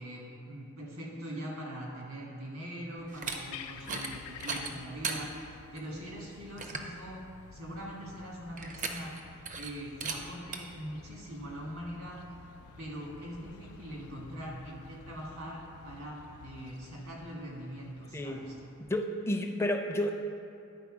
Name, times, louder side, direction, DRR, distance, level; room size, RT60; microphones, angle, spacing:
voice 1, 0.0-7.2 7.5-9.3 9.5-12.4 12.8-18.5, equal, 70° right, -2 dB, 1.6 m, -42 dB
sound 1, 3.0-19.0, left 6 dB, 90° left, 0.3 m, -51 dB
sound 2, 3.1-3.4 3.8-4.1 4.4-5.2 5.8-5.9 6.2-6.3 6.6-6.9 8.6-9.2 9.5-9.7 10.0-10.2 10.5-10.6, right 5 dB, 35° right, 0.5 m, -36 dB
voice 2, 18.9-20.1, left 1 dB, 10° left, 3 dB, 0.4 m, -31 dB
9.4 x 4.2 x 4.9 m, 2.6 s
head